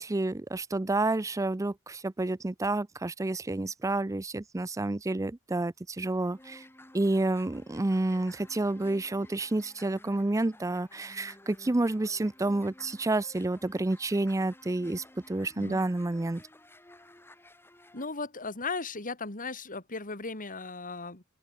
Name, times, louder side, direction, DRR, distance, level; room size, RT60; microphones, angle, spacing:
voice 1, 0.0-6.6 6.9-16.4, right 2 dB, 15° right, 0.5 m, -29 dB
sound 1, 6.1-18.0, left 1 dB, 10° left, 4.4 m, -54 dB
voice 2, 17.9-21.2, left 3 dB, 40° left, 3.6 m, -36 dB
open air
head